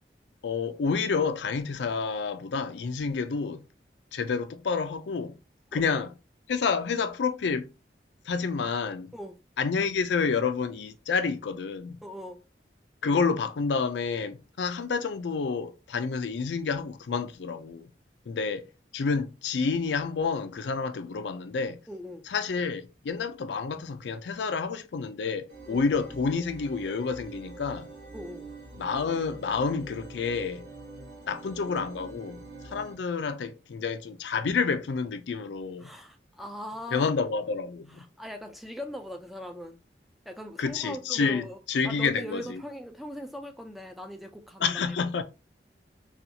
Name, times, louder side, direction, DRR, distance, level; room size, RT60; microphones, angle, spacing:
voice 1, 0.4-3.6 4.1-5.3 5.7-6.1 6.5-7.7 8.3-9.1 9.6-12.0 13.0-17.9 18.3-18.7 18.9-21.8 22.3-27.9 28.8-30.7 31.3-32.4 32.7-35.9 36.9-38.0 40.6-42.6 44.6-45.2, left 5 dB, 85° left, 0.4 m, -29 dB
voice 2, 12.0-12.4 21.9-22.3 25.7-25.9 28.1-28.5 35.8-37.1 37.9-39.8 40.3-41.6 41.8-45.0, equal, ahead, 0.3 m, -40 dB
sound 1, 25.5-33.0, right 3 dB, 65° right, 1.1 m, -45 dB
4.2 x 2.3 x 2.7 m
head